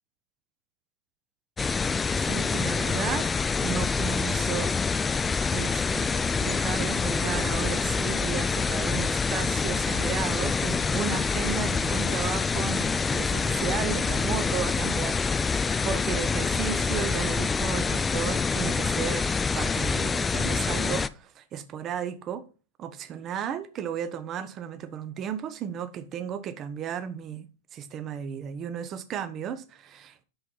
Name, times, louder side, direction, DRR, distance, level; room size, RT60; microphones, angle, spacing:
sound 1, 1.6-21.1, left 5 dB, 15° left, 0.3 m, -26 dB
voice 1, 2.3-3.3 3.6-19.3 19.5-22.5 22.8-27.5 27.7-30.2, right 8 dB, 30° right, 0.8 m, -34 dB
6.0 x 5.6 x 5.3 m
figure-of-eight pair, 90°, 0 cm